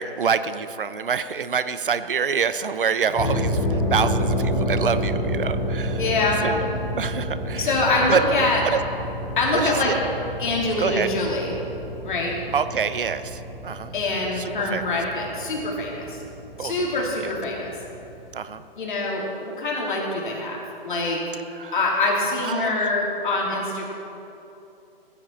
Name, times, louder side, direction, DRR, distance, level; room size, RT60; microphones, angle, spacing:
voice 1, 0.0-6.0 6.4-6.7 7.0-7.7 8.1-8.4 8.7-8.8 9.5-9.9 10.8-11.1 12.5-13.9 14.4-14.8 16.6-16.7 17.2-17.3 18.3-18.6 21.5-21.8 22.4-22.8, right 6 dB, 60° right, 12 dB, 0.7 m, -26 dB
sound 1, 3.1-18.4, equal, 5° left, 0.4 m, -29 dB
voice 2, 5.9-6.4 7.5-8.6 9.4-10.0 10.4-11.5 12.0-12.4 13.9-16.2 16.6-17.7 18.8-21.2 21.7-23.9, left 2 dB, 55° left, -3 dB, 2.9 m, -24 dB
15.5 x 9.8 x 4.4 m, 2.8 s
figure-of-eight pair, 145°, 30 cm